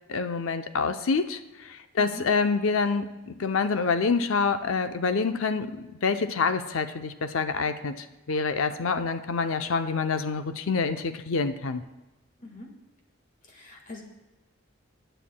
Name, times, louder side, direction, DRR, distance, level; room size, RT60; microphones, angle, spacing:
voice 1, 0.1-1.4 1.6-11.8, left 4 dB, 75° left, 9 dB, 0.6 m, -27 dB
voice 2, 13.4-14.0, left 2 dB, 40° left, 1 dB, 1.6 m, -42 dB
18.5 x 9.0 x 2.2 m, 1.0 s
head